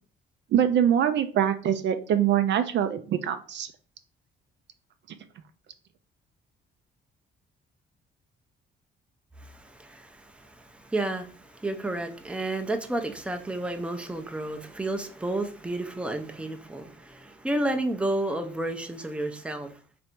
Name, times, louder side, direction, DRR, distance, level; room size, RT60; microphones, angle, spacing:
voice 1, 0.5-3.7, right 9 dB, 65° right, 9 dB, 0.4 m, -24 dB
voice 2, 9.4-19.7, right 1 dB, 5° right, 6 dB, 0.5 m, -31 dB
3.2 x 2.6 x 4.4 m, 0.42 s
cardioid pair, 90°, 20 cm